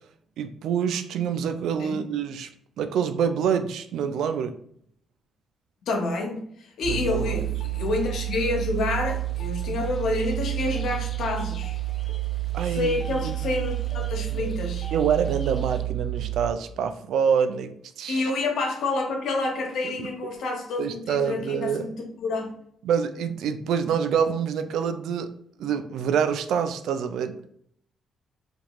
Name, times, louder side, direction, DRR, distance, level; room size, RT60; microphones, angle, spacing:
voice 1, 0.4-2.5 2.8-4.5 6.9-7.5 12.5-13.3 14.3-14.4 14.9-18.3 20.0-20.1 20.8-21.9 22.8-25.3 25.6-27.4, right 7 dB, 80° right, 0.3 m, -26 dB
voice 2, 5.8-11.8 12.6-14.9 18.1-22.5, left 3 dB, 70° left, 0.9 m, -28 dB
sound 1, 6.8-16.5, right 17 dB, 10° right, 0.9 m, -30 dB
sound 2, 6.9-15.8, left 2 dB, 40° left, 0.5 m, -47 dB
3.4 x 2.3 x 3.0 m
cardioid pair, 90°, 0 cm